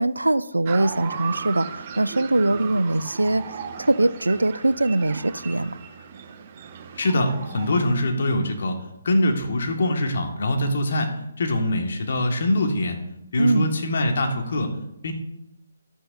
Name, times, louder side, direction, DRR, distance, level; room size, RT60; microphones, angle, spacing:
voice 1, 0.0-5.8 13.4-13.7, right 2 dB, 85° right, 18 dB, 0.4 m, -22 dB
sound 1, 0.7-7.9, right 7 dB, 35° right, 0.9 m, -36 dB
voice 2, 7.0-8.7 9.0-11.1 11.4-13.0 13.3-14.7 15.0-15.1, left 1 dB, 55° left, 3 dB, 1.7 m, -23 dB
12.0 x 9.9 x 2.7 m, 0.83 s
figure-of-eight pair, 140°, 0 cm